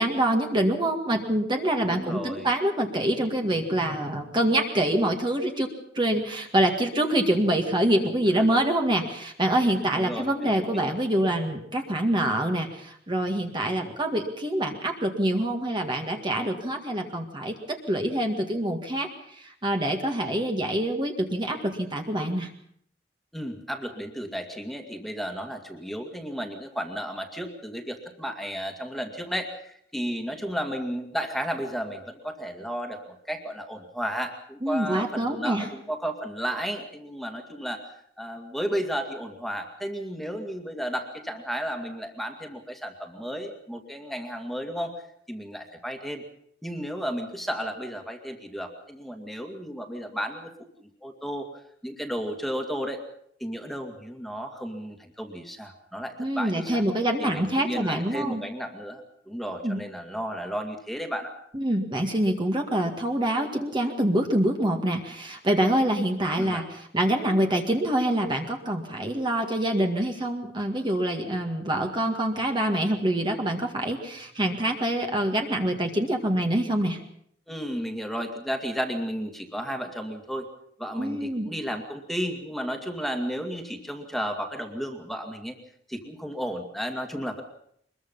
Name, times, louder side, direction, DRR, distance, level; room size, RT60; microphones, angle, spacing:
voice 1, 0.0-22.5 34.6-35.7 56.2-58.4 59.6-59.8 61.5-66.6 66.9-77.0 81.0-81.5, right 1 dB, 25° right, 3 dB, 2.0 m, -25 dB
voice 2, 1.9-2.5 9.7-10.9 23.3-37.8 38.2-44.9 45.3-46.2 46.6-50.5 50.8-51.5 51.8-53.0 53.4-56.8 57.2-61.3 66.3-66.6 77.5-80.5 80.8-85.6 85.9-87.4, equal, ahead, 3 dB, 2.2 m, -33 dB
23.5 x 21.5 x 5.6 m, 0.68 s
head